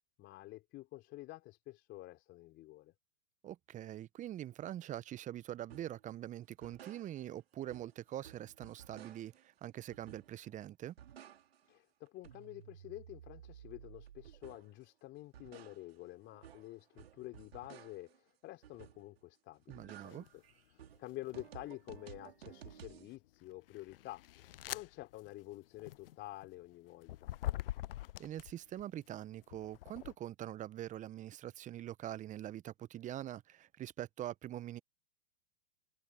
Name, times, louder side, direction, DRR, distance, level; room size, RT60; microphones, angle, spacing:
voice 1, 0.2-2.9 11.7-20.4 20.7-24.3 24.7-27.3, left 17 dB, 35° left, 3.4 m, -49 dB
voice 2, 3.4-10.9 19.7-20.3 28.2-34.8, right 12 dB, 25° right, 1.0 m, -44 dB
sound 1, 5.7-6.0 6.4-7.4 7.7-9.5 9.9-10.5 10.8-11.8 12.1-14.8 15.2-18.2 18.6-19.2 19.5-23.1, right 10 dB, 70° right, 2.7 m, -55 dB
sound 2, 20.1-20.4 21.0-21.8 22.4-28.8 29.4-30.1, left 14 dB, 65° left, 0.6 m, -44 dB
hypercardioid pair, 105°, 31 cm